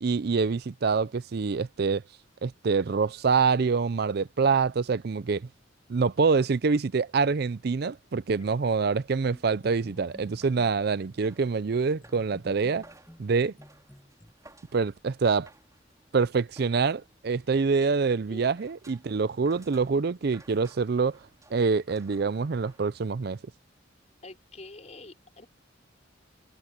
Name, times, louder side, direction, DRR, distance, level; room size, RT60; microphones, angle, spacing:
voice 1, 0.0-2.0 2.4-5.5 5.9-12.8 13.2-13.5 14.7-15.5 16.1-21.2 21.5-23.4, right 5 dB, 55° right, 0.5 m, -26 dB
sound 1, 8.5-23.3, right 2 dB, 20° right, 4.7 m, -59 dB
sound 2, 9.3-10.8 12.0-14.3, equal, 10° left, 2.1 m, -52 dB
voice 2, 24.2-25.5, left 2 dB, 35° left, 5.0 m, -46 dB
head